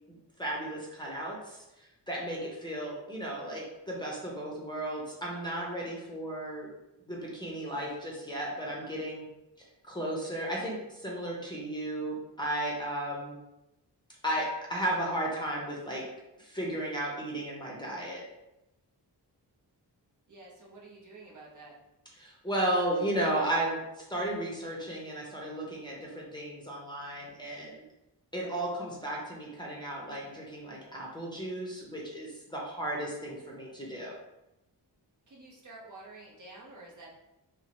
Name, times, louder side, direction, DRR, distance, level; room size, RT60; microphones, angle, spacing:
voice 1, 0.4-1.6 2.1-6.7 7.1-9.2 9.8-13.4 14.2-16.1 16.4-18.3 22.2-27.8 28.3-34.1, right 1 dB, 10° left, -4 dB, 0.6 m, -34 dB
voice 2, 20.3-21.7 35.3-37.1, right 2 dB, 45° right, -3 dB, 0.7 m, -49 dB
2.8 x 2.1 x 2.8 m, 0.92 s
wide cardioid pair, 80°, 43 cm